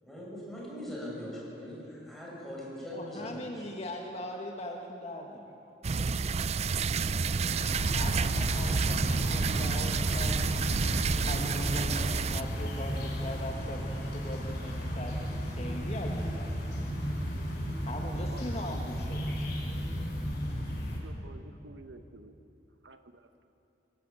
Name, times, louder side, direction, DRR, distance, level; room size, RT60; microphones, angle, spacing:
voice 1, 0.0-3.6, equal, ahead, -6 dB, 7.7 m, -41 dB
voice 2, 2.9-5.5 7.9-10.4 11.3-16.6 17.9-19.6, left 1 dB, 35° left, 1 dB, 1.6 m, -40 dB
sound 1, 5.8-12.4, right 5 dB, 35° right, 0.4 m, -29 dB
sound 2, 7.6-21.0, equal, 65° left, 5.4 m, -34 dB
voice 3, 18.3-18.8 21.0-22.3 22.8-23.3, right 3 dB, 90° right, 8 dB, 1.2 m, -50 dB
24.0 x 17.0 x 8.9 m, 2.8 s
head